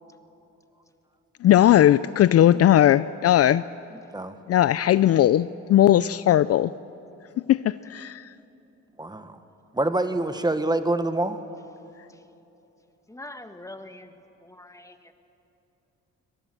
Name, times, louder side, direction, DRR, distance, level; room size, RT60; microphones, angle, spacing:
voice 1, 1.4-3.6 4.5-6.7 7.5-8.3, left 12 dB, 55° left, 17 dB, 0.4 m, -18 dB
voice 2, 9.0-9.4 9.7-11.4, right 2 dB, 15° right, 9 dB, 1.3 m, -25 dB
voice 3, 13.1-14.1 14.4-15.1, left 1 dB, 10° left, 8 dB, 1.4 m, -43 dB
24.0 x 18.5 x 7.7 m, 2.9 s
cardioid pair, 90°, 30 cm